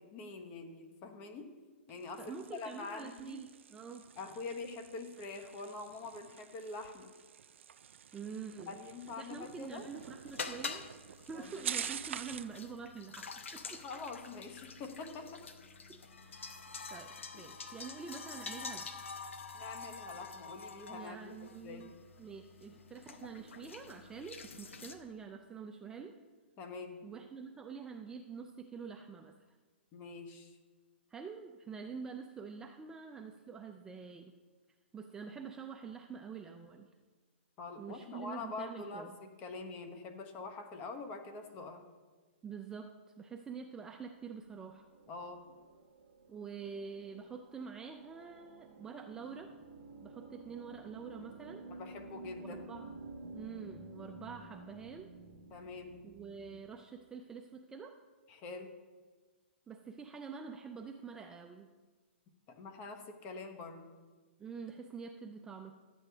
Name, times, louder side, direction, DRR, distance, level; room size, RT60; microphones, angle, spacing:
voice 1, 0.0-1.6 1.9-3.5 4.2-7.1 8.7-9.9 11.3-11.7 13.7-15.4 19.5-21.4 21.6-21.9 26.6-27.0 29.9-30.6 37.6-41.8 45.1-45.5 51.7-52.6 55.5-56.0 58.3-58.7 62.5-63.9, left 3 dB, 25° left, 6 dB, 1.0 m, -45 dB
sound 1, 1.9-12.6, right 8 dB, 80° right, 0.4 m, -47 dB
voice 2, 2.2-4.1 8.1-8.8 9.2-13.9 15.9-16.6 16.9-18.9 20.9-21.9 22.2-26.2 27.0-29.4 31.1-34.3 34.9-36.9 37.8-39.1 42.4-44.9 46.3-49.5 50.0-51.7 52.4-52.9 53.3-55.1 56.0-58.0 59.7-61.7 64.4-65.7, right 5 dB, 10° right, 4 dB, 0.4 m, -46 dB
sound 2, 9.4-24.9, left 4 dB, 90° left, 0.9 m, -47 dB
sound 3, 44.7-56.6, right 2 dB, 45° right, 1.1 m, -52 dB
12.5 x 8.4 x 3.4 m, 1.4 s
hypercardioid pair, 150°, 7 cm